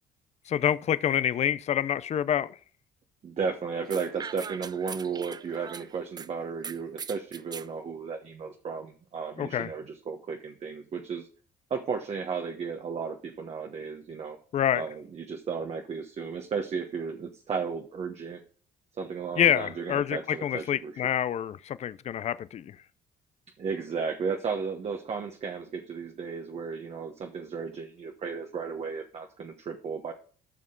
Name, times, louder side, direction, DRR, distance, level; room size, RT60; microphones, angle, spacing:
voice 1, 0.5-2.5 9.4-9.7 14.5-14.8 19.4-22.8, left 10 dB, 40° left, 0.5 m, -27 dB
voice 2, 3.2-11.3 11.7-14.4 14.7-18.4 19.0-21.0 23.6-30.1, right 5 dB, 40° right, 1.2 m, -34 dB
sound 1, 3.9-6.3 6.6-7.7, right 6 dB, 25° right, 0.4 m, -40 dB
13.0 x 6.1 x 3.8 m
cardioid pair, 110°, 17 cm